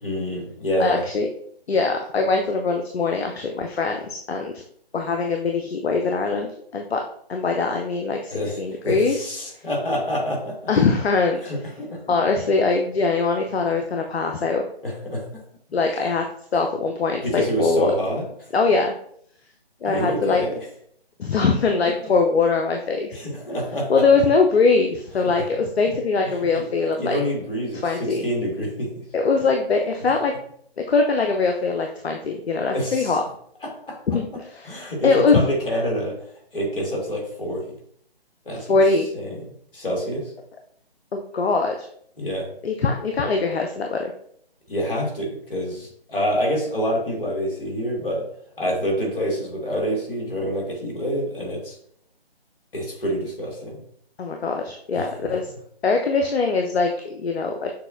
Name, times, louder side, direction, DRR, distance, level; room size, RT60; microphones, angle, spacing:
voice 1, 0.0-1.0 8.3-10.6 11.4-12.0 14.8-15.4 17.2-18.5 19.8-20.6 22.0-22.1 23.1-24.0 26.2-26.7 27.0-29.1 32.7-33.2 33.6-34.0 34.6-37.7 38.4-38.8 39.1-40.3 42.2-42.5 44.7-48.2 48.6-51.8 52.7-53.7 54.9-55.3, equal, 60° left, -1 dB, 1.7 m, -27 dB
voice 2, 0.8-1.3 1.7-4.6 4.9-7.0 7.3-9.2 10.7-11.4 12.1-14.7 15.7-16.2 16.5-17.9 18.5-18.9 19.8-20.4 21.2-23.3 23.9-27.2 27.8-28.2 29.1-30.3 30.9-33.2 34.1-34.7 35.0-35.5 38.7-39.1 41.1-41.9 42.6-44.1 54.2-55.5 55.8-57.7, left 4 dB, 75° left, 3 dB, 0.5 m, -22 dB
6.6 x 2.2 x 2.5 m, 0.65 s
figure-of-eight pair, 145°, 32 cm